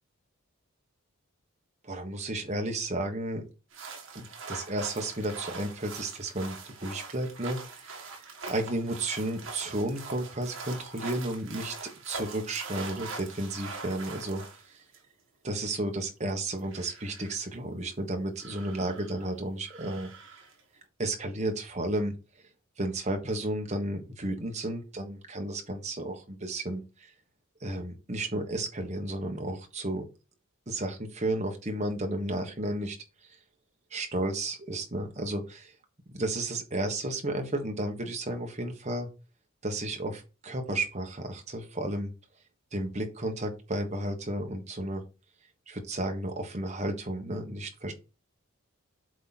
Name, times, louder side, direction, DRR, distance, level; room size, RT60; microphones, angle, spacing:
voice 1, 1.8-3.4 4.1-8.1 8.5-11.7 12.0-14.4 14.7-14.8 15.4-20.1 21.0-22.1 22.8-27.1 27.6-30.0 30.7-33.0 33.2-33.4 33.9-35.7 36.1-39.1 39.6-42.1 42.7-45.0 45.7-47.9, right 1 dB, 30° right, 3 dB, 1.3 m, -33 dB
sound 1, 3.7-15.0 16.4-17.4 18.4-19.3 19.6-20.6, right 4 dB, 60° right, 1.8 m, -43 dB
7.8 x 3.7 x 4.3 m, 0.31 s
head